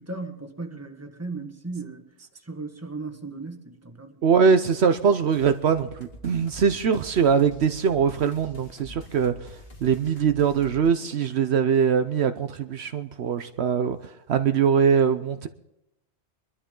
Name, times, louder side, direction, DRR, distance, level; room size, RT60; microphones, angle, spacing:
voice 1, 0.0-2.1 2.4-4.2, right 3 dB, 15° right, 1.5 m, -36 dB
voice 2, 4.2-9.5 9.8-14.0 14.3-15.5, right 6 dB, 70° right, 1.0 m, -22 dB
sound 1, 5.3-10.9, left 1 dB, 60° left, 2.6 m, -46 dB
22.5 x 12.5 x 3.8 m
omnidirectional pair, 1.2 m